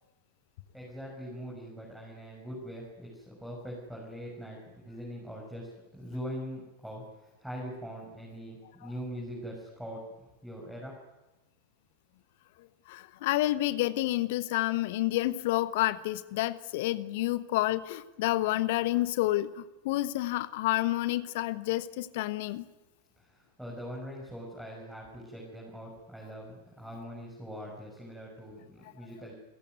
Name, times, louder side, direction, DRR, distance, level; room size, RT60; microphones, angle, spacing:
voice 1, 0.7-10.0 10.4-11.0 23.2-23.3 23.6-29.3, equal, 5° right, -3 dB, 6.7 m, -42 dB
voice 2, 12.9-22.6, left 16 dB, 50° left, 15 dB, 1.2 m, -29 dB
29.0 x 15.5 x 9.4 m, 1.0 s
figure-of-eight pair, 90°, 0 cm